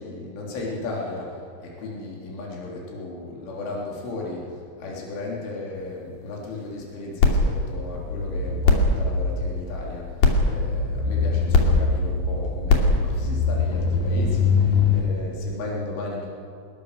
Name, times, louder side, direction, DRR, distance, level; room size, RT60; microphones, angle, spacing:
voice 1, 0.0-16.3, left 2 dB, 75° left, -3 dB, 6.0 m, -35 dB
sound 1, 7.2-15.0, left 4 dB, 50° left, 3.8 m, -21 dB
26.0 x 21.5 x 6.7 m, 2.6 s
omnidirectional pair, 5.6 m